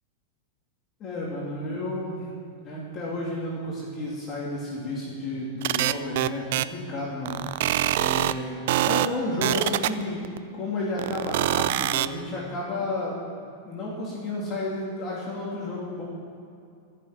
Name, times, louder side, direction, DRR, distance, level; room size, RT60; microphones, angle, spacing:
voice 1, 1.0-2.3 2.6-7.4 8.0-10.2 10.5-13.1 13.6-16.0, left 2 dB, 30° left, -5 dB, 2.8 m, -32 dB
sound 1, 5.6-6.6 7.3-8.3 8.7-9.1 9.4-10.4 11.0-12.1, right 14 dB, 65° right, 0.5 m, -24 dB
14.5 x 6.8 x 9.8 m, 2.5 s
supercardioid pair, 145°, 0 cm